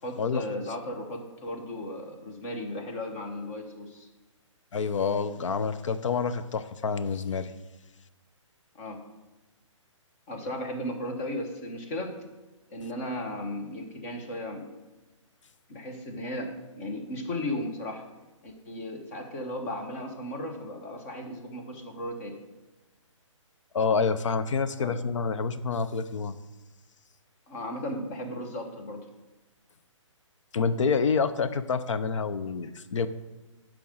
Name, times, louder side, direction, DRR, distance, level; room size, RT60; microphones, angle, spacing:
voice 1, 0.0-4.1 8.7-9.0 10.3-12.2 12.7-14.8 15.7-18.0 18.4-22.4 24.8-24.9 27.5-29.0, left 1 dB, 25° left, 4 dB, 1.0 m, -35 dB
voice 2, 4.7-7.5 23.7-26.4 30.5-33.1, left 5 dB, 70° left, 12 dB, 0.6 m, -27 dB
7.0 x 4.9 x 6.4 m, 1.1 s
hypercardioid pair, 165°, 17 cm